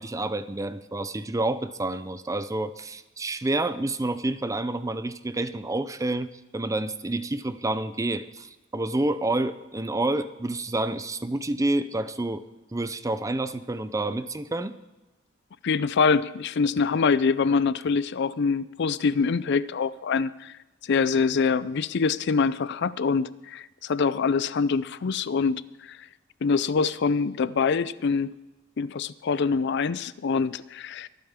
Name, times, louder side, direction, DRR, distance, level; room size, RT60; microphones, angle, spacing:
voice 1, 0.0-12.4 12.7-14.7, right 2 dB, 15° right, 12 dB, 0.5 m, -29 dB
voice 2, 15.6-20.5 20.8-26.0 26.4-28.3 28.8-31.1, left 5 dB, 60° left, 18 dB, 0.4 m, -25 dB
24.0 x 9.0 x 3.6 m, 1.1 s
head